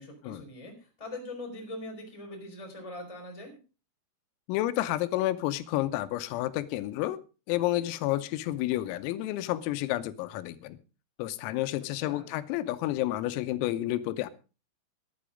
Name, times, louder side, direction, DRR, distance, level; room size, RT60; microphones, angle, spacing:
voice 1, 0.0-3.6 11.9-12.3, left 2 dB, 10° left, 3.1 m, -42 dB
voice 2, 4.5-7.2 7.5-10.8 11.2-14.3, left 15 dB, 90° left, 3.5 m, -30 dB
13.5 x 11.5 x 5.0 m
omnidirectional pair, 5.9 m